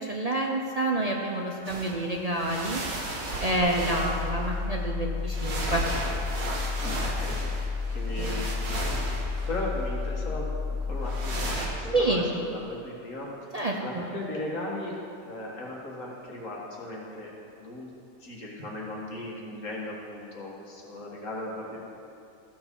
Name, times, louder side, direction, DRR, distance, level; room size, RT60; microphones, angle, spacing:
voice 1, 0.0-2.8 3.4-5.9 8.2-8.4 11.9-12.3 13.5-14.1, right 2 dB, 35° right, -1 dB, 0.7 m, -28 dB
sound 1, 1.6-2.0 2.2-4.6 5.3-9.9 11.0-11.7, right 2 dB, 85° right, 1.9 m, -34 dB
sound 2, 3.6-11.6, left 4 dB, 45° left, 0.9 m, -31 dB
voice 2, 6.8-7.4 7.9-8.6 9.5-10.5 10.9-13.3 13.8-15.0 15.2-17.9 18.2-21.8, left 1 dB, 65° left, -3 dB, 2.1 m, -37 dB
14.5 x 6.0 x 5.4 m, 2.6 s
omnidirectional pair, 1.4 m